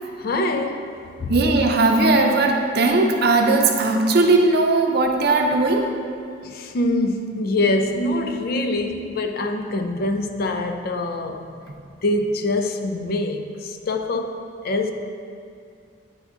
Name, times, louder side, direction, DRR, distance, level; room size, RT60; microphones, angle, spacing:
voice 1, 0.2-0.9 1.2-1.3 6.4-11.4 12.0-14.4 14.6-14.9, left 2 dB, 50° left, 6 dB, 0.4 m, -24 dB
voice 2, 1.3-5.9, right 2 dB, 55° right, 2 dB, 0.6 m, -18 dB
9.2 x 3.6 x 3.7 m, 2.3 s
head